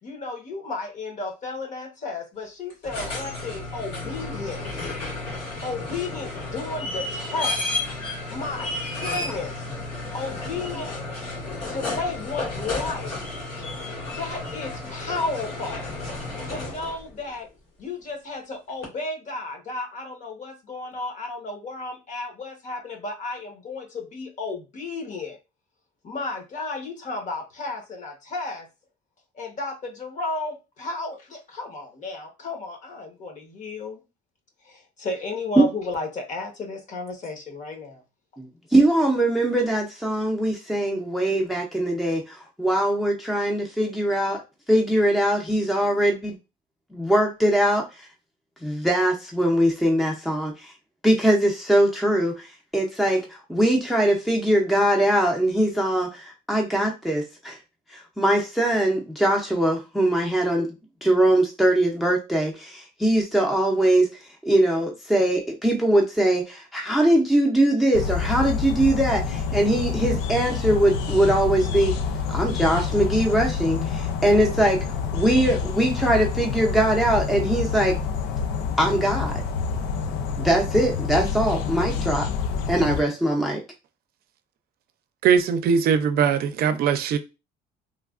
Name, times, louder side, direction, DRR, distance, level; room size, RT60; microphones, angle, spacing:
voice 1, 0.0-4.9 5.6-7.6 8.3-9.6 10.1-10.9 11.7-13.2 14.2-15.9 16.4-17.5 17.8-25.4 26.0-28.7 29.3-34.0 34.6-38.0, left 3 dB, 45° left, 1.0 m, -33 dB
sound 1, 2.7-17.1 18.8-18.9, left 2 dB, 70° left, 1.7 m, -32 dB
voice 2, 38.4-44.4 44.7-46.3 46.9-48.1 48.6-50.7 51.0-57.6 57.9-60.7 61.0-64.1 64.4-72.0 72.3-74.8 75.1-78.0 78.8-79.4 80.4-82.3 82.7-83.6, right 1 dB, ahead, 0.5 m, -22 dB
sound 2, 67.9-83.0, left 6 dB, 85° left, 0.4 m, -27 dB
voice 3, 85.2-87.2, right 7 dB, 65° right, 0.5 m, -20 dB
3.2 x 2.3 x 2.4 m
cardioid pair, 110°, 17 cm